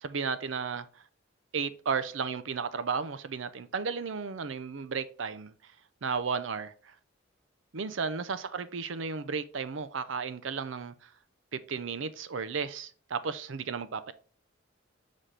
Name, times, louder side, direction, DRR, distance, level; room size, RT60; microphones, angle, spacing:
voice 1, 0.0-0.9 1.5-5.7 6.0-6.9 7.7-11.1 11.5-14.1, right 5 dB, 70° right, 0.6 m, -34 dB
7.6 x 4.1 x 3.3 m
head